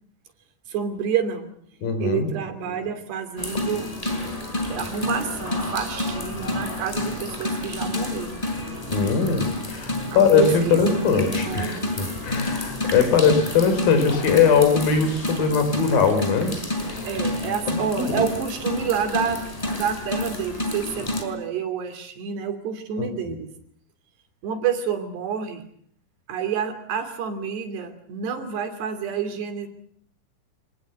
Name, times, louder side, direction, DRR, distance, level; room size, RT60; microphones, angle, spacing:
voice 1, 0.7-1.5 2.0-3.9 4.7-8.4 10.1-10.8 11.1-12.0 17.1-23.5 24.4-25.6 26.3-29.7, right 7 dB, 80° right, 9 dB, 5.0 m, -29 dB
voice 2, 1.8-2.3 8.9-16.5 16.9-17.0 17.7-18.1 23.0-23.4, left 5 dB, 60° left, 9 dB, 5.7 m, -21 dB
sound 1, 3.4-21.2, left 1 dB, 10° left, 4.6 m, -29 dB
28.0 x 19.0 x 8.0 m, 0.64 s
omnidirectional pair, 4.7 m